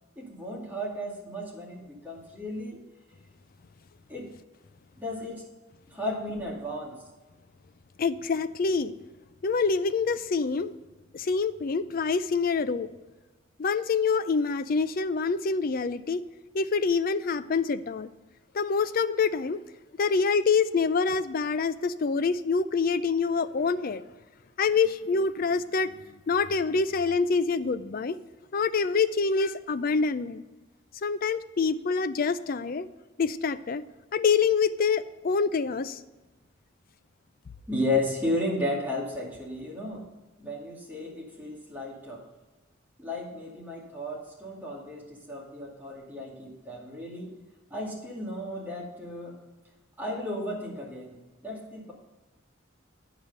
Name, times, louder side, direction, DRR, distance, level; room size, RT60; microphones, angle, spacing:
voice 1, 0.2-2.8 4.1-4.3 5.0-5.4 5.9-7.0 37.7-40.1 40.4-42.2 43.0-47.3 47.7-49.4 50.0-51.9, left 1 dB, 10° right, -4 dB, 2.3 m, -34 dB
voice 2, 8.0-8.9 9.4-10.7 11.1-12.9 13.6-16.2 16.5-18.1 18.5-19.6 20.0-24.0 24.6-26.0 26.3-28.2 28.5-30.4 31.0-32.9 33.2-33.8 34.1-36.0, left 5 dB, 45° left, 12 dB, 0.4 m, -26 dB
10.5 x 4.9 x 6.7 m, 1.2 s
head